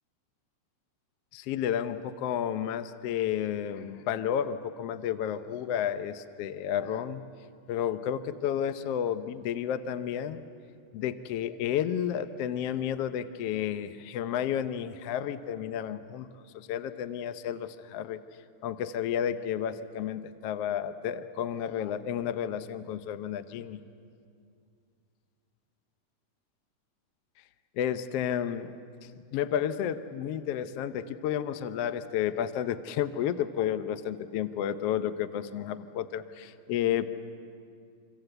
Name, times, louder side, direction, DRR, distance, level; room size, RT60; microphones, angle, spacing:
voice 1, 1.3-7.2 7.7-10.4 10.9-16.3 16.5-18.2 18.6-23.8 27.8-28.8 29.3-37.1, left 9 dB, 70° left, 10 dB, 1.5 m, -31 dB
26.5 x 26.0 x 7.9 m, 2.3 s
omnidirectional pair, 3.6 m